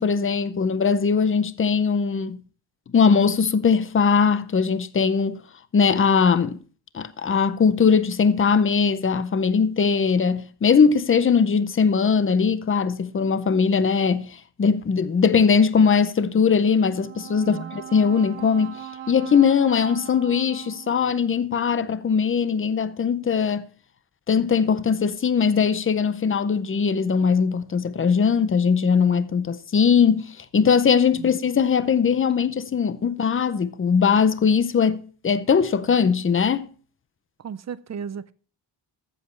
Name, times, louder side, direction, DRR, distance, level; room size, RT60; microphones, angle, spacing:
voice 1, 0.0-2.4 2.9-5.4 5.7-6.6 6.9-18.7 19.1-23.6 24.3-36.7, left 6 dB, 30° left, 0.5 m, -20 dB
Brass instrument, 16.8-21.2, right 10 dB, 80° right, 1.6 m, -40 dB
voice 2, 37.4-38.3, right 7 dB, 40° right, 0.4 m, -34 dB
14.0 x 7.5 x 3.1 m
wide cardioid pair, 180°, 46 cm